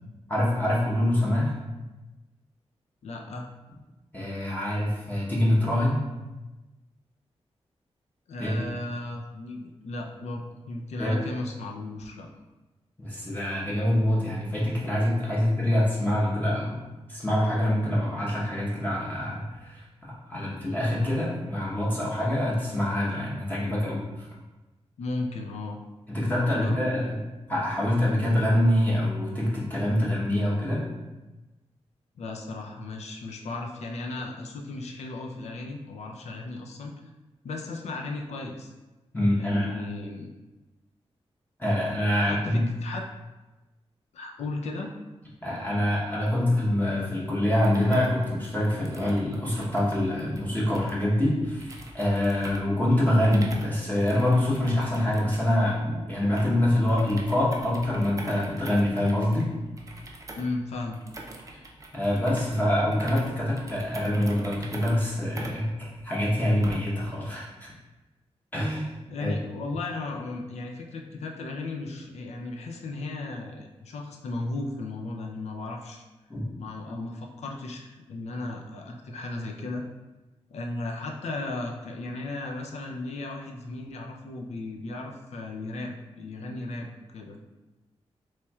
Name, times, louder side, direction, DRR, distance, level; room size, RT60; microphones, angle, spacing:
voice 1, 0.3-1.5 4.1-6.1 8.4-8.8 11.0-11.2 13.0-16.8 17.1-24.3 26.1-27.2 27.5-30.9 39.1-39.8 41.6-42.6 45.4-59.5 61.9-67.7 68.5-68.9 69.2-69.3 76.3-76.4, left 1 dB, 15° left, -7 dB, 0.9 m, -25 dB
voice 2, 3.0-3.5 8.3-12.3 15.2-15.4 20.3-20.5 25.0-25.8 26.5-26.9 32.2-36.9 37.4-38.7 39.4-40.3 42.2-43.0 44.1-44.9 60.3-61.0 69.1-76.0 76.6-79.8 80.5-87.4, left 2 dB, 80° left, 1 dB, 0.4 m, -35 dB
sound 1, 47.4-67.0, right 2 dB, 30° right, 0.5 m, -45 dB
4.3 x 3.1 x 2.3 m, 1.1 s
wide cardioid pair, 95°, 11 cm